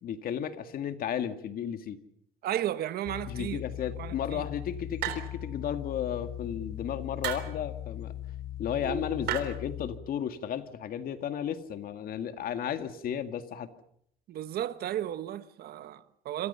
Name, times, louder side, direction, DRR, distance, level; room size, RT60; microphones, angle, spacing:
voice 1, 0.0-2.0 3.3-8.1 8.6-13.7, left 9 dB, 60° left, 2.1 m, -34 dB
voice 2, 2.4-3.6 4.0-4.5 14.3-16.5, right 12 dB, 65° right, 1.4 m, -34 dB
sound 1, 3.0-9.9, left 12 dB, 75° left, 4.5 m, -39 dB
sound 2, 5.0-5.6 7.2-7.6 9.3-9.4, right 13 dB, 80° right, 3.6 m, -33 dB
sound 3, 8.8-10.5, right 2 dB, 30° left, 4.8 m, -44 dB
27.0 x 27.0 x 5.8 m
cardioid pair, 110°, 17 cm